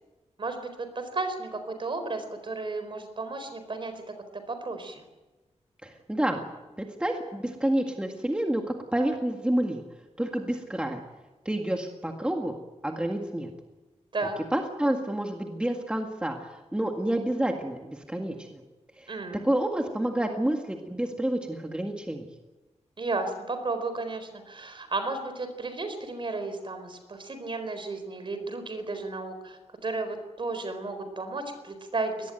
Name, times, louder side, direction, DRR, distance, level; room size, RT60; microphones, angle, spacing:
voice 1, 0.4-4.0 4.3-5.0 14.1-14.3 19.1-19.4 23.0-32.3, right 3 dB, 45° right, 8 dB, 4.3 m, -33 dB
voice 2, 5.8-6.4 6.8-8.6 8.9-9.8 10.2-11.0 11.5-12.5 12.8-13.5 14.5-18.6 19.0-19.1 19.4-22.3, right 1 dB, 10° right, 2 dB, 1.8 m, -29 dB
22.5 x 19.0 x 9.2 m, 1.1 s
wide cardioid pair, 160°, 12 cm